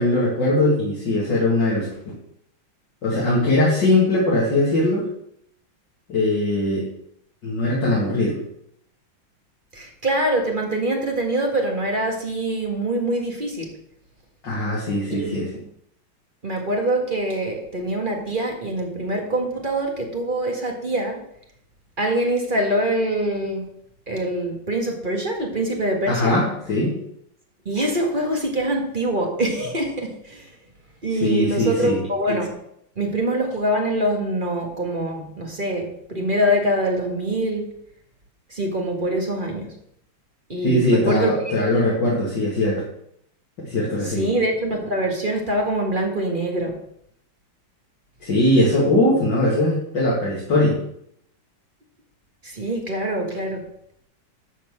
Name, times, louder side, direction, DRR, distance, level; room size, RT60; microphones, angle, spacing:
voice 1, 0.0-1.9 3.0-5.1 6.1-6.8 7.4-8.4 14.4-15.5 26.1-27.0 31.1-32.0 40.6-42.8 43.6-44.3 48.2-50.8, left 1 dB, 60° left, -6 dB, 3.0 m, -20 dB
voice 2, 9.7-13.7 15.1-15.6 16.4-21.2 22.0-23.6 24.1-26.3 27.7-30.5 31.0-32.5 33.0-37.7 38.5-39.7 40.5-41.6 44.0-46.8 52.4-53.7, right 1 dB, 25° right, 1 dB, 1.7 m, -24 dB
12.0 x 4.5 x 7.2 m, 0.72 s
omnidirectional pair, 2.2 m